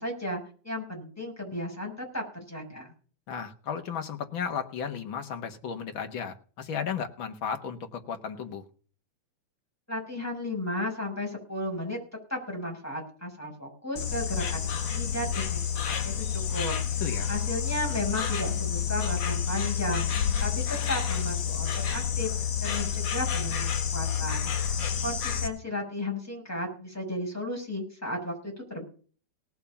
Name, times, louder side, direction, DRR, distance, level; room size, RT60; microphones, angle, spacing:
voice 1, 0.0-2.9 9.9-12.0 12.3-17.0 17.3-22.3 22.6-24.5 25.0-28.9, left 1 dB, 5° left, 0 dB, 6.1 m, -34 dB
voice 2, 3.3-8.6 17.0-17.3, left 7 dB, 50° left, 6 dB, 1.8 m, -34 dB
Insect, 14.0-25.5, left 8 dB, 65° left, 3.2 m, -29 dB
18.5 x 7.2 x 5.8 m, 0.41 s
omnidirectional pair, 3.5 m